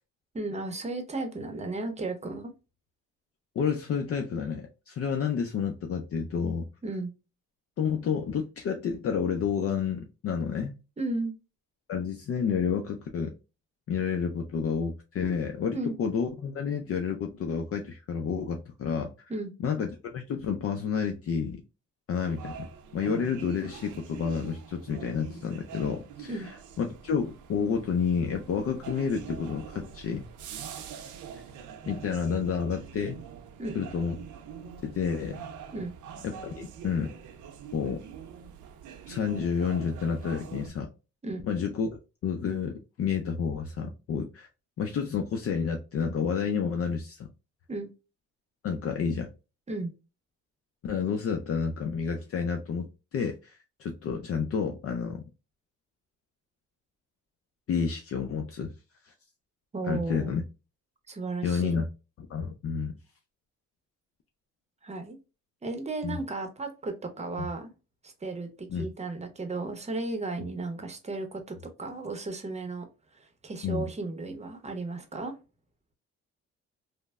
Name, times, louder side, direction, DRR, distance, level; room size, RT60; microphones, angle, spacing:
voice 1, 0.3-2.5 6.8-7.1 11.0-11.3 15.7-15.9 19.3-19.5 26.3-26.5 33.6-33.8 35.7-35.9 41.2-41.4 47.7-47.9 49.7-49.9 59.7-60.4 61.1-61.8 64.8-65.2 65.6-67.7 68.0-72.8 73.1-75.3, right 2 dB, 20° right, 0.8 m, -34 dB
voice 2, 3.6-6.7 7.8-10.8 11.9-13.3 13.9-19.1 19.6-21.6 22.1-22.7 22.9-26.5 26.8-30.2 31.9-33.2 33.7-34.2 34.8-35.4 36.2-37.1 37.7-38.0 39.1-40.9 41.4-41.9 42.2-44.5 44.8-47.3 48.6-49.3 50.8-55.2 57.7-58.7 59.0-59.1 59.8-60.4 61.4-61.9 62.2-62.9 66.0-66.2 67.4-67.5 68.7-68.8 73.6-73.9, left 6 dB, 50° left, 0.5 m, -30 dB
sound 1, 22.3-40.7, right 7 dB, 80° right, 0.6 m, -44 dB
3.1 x 2.1 x 2.3 m
cardioid pair, 90°, 30 cm